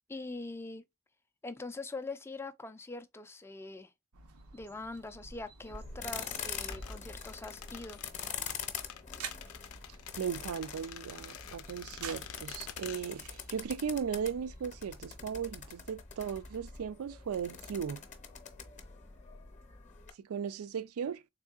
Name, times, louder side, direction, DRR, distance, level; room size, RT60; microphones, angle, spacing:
voice 1, 0.1-0.8 1.4-3.9 4.5-8.0, left 2 dB, 10° left, 0.3 m, -43 dB
sound 1, 4.1-15.9, right 5 dB, 90° right, 0.7 m, -51 dB
sound 2, 5.6-20.1, left 6 dB, 35° left, 0.7 m, -44 dB
sound 3, 6.3-13.5 13.7-13.8, left 9 dB, 75° left, 0.5 m, -49 dB
voice 2, 10.2-18.0 20.2-21.2, right 7 dB, 75° right, 0.4 m, -37 dB
3.6 x 3.6 x 2.3 m
head